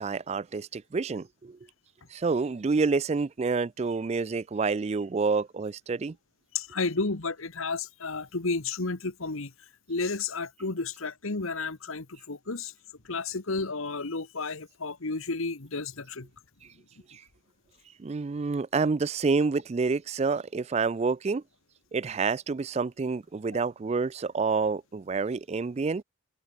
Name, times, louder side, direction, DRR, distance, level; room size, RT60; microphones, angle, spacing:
voice 1, 0.0-1.6 2.1-6.1 17.1-17.2 18.0-21.4 21.9-26.0, right 4 dB, 30° right, 0.3 m, -28 dB
voice 2, 6.5-9.5 9.9-12.7 13.1-16.3, left 3 dB, 75° left, 1.5 m, -32 dB
head